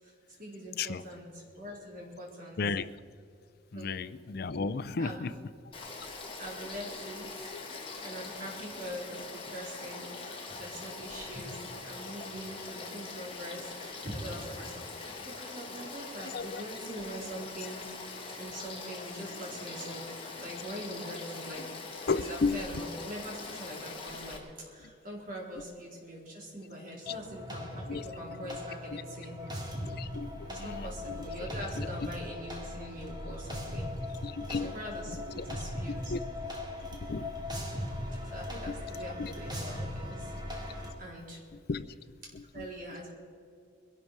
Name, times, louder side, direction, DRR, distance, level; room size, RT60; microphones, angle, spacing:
voice 1, 0.0-2.6 3.7-4.0 5.0-5.2 6.4-7.5 8.0-17.8 18.4-21.8 22.3-29.4 30.5-33.9 34.6-36.1 38.2-40.3 40.6-41.4 42.5-43.1, equal, 50° right, -3 dB, 4.3 m, -43 dB
voice 2, 2.6-2.9 3.7-5.3 7.5-7.6 16.3-16.6 22.1-22.8 27.1-27.2 27.9-28.1 28.5-28.6 28.9-29.0 29.8-31.3 31.8-32.1 33.2-33.3 34.2-34.8 35.1-35.5 35.9-36.6 36.9-37.3 38.6-38.8 39.2-39.3 41.7-41.8 42.3-42.7, left 4 dB, 60° left, 15 dB, 0.5 m, -34 dB
Frog / Stream, 5.7-24.4, left 3 dB, 30° left, 2.5 m, -43 dB
sound 1, 27.1-40.9, left 1 dB, 25° right, 2.3 m, -39 dB
22.5 x 12.0 x 4.7 m, 2.3 s
head